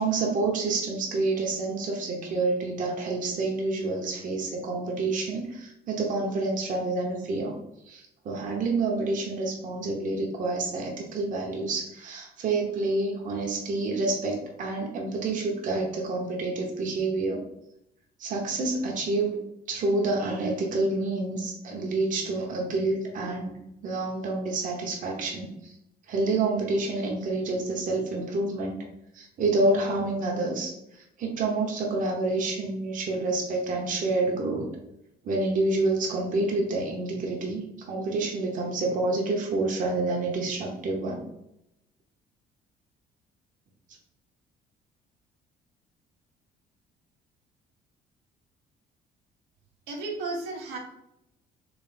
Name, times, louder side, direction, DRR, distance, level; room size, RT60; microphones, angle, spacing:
voice 1, 0.0-7.5 7.9-17.4 18.2-19.4 19.7-23.5 23.8-25.7 26.1-28.8 29.1-34.7 35.2-41.3, right 2 dB, 50° right, 0 dB, 1.0 m, -28 dB
voice 2, 49.9-50.8, right 3 dB, 85° right, -1 dB, 1.0 m, -33 dB
3.4 x 3.1 x 4.2 m, 0.83 s
cardioid pair, 110°, 17 cm